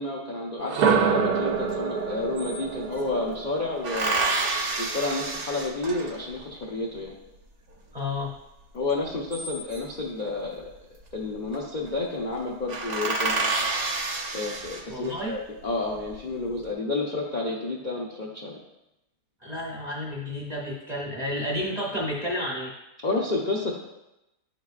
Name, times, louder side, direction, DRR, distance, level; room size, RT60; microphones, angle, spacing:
voice 1, 0.0-4.3 4.8-7.1 8.7-10.7 11.1-13.5 14.3-18.6 23.0-23.8, left 2 dB, 45° left, -4 dB, 0.6 m, -30 dB
sound 1, 0.6-4.6, right 6 dB, 75° right, 1.1 m, -26 dB
sound 2, 1.7-1.8 2.0-3.1 3.8-6.4 9.0-10.0 11.2-11.5 11.9-12.0 12.3-12.4 12.7-15.2 15.8-16.5, right 3 dB, 50° right, 0.5 m, -29 dB
voice 2, 7.9-8.3 14.9-15.4 19.4-22.7, left 1 dB, 30° right, -4 dB, 0.9 m, -31 dB
10.0 x 3.8 x 2.4 m, 0.92 s
omnidirectional pair, 1.7 m